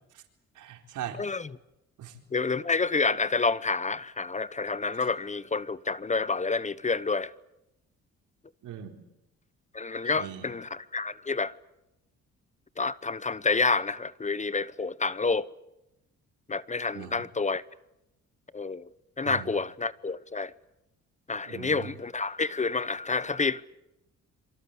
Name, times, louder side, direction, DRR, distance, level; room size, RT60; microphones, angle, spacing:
voice 1, 0.5-1.2 2.0-2.2 8.6-9.0 10.0-10.4 16.9-17.2 19.2-19.5 21.5-21.9, right 10 dB, 80° right, 4.3 m, -40 dB
voice 2, 1.2-1.5 2.3-7.3 9.7-11.5 12.8-15.5 16.5-17.6 18.5-18.9 19.2-20.5 21.3-23.8, left 4 dB, 25° left, 0.9 m, -29 dB
26.5 x 24.5 x 8.4 m
cardioid pair, 90°, 30 cm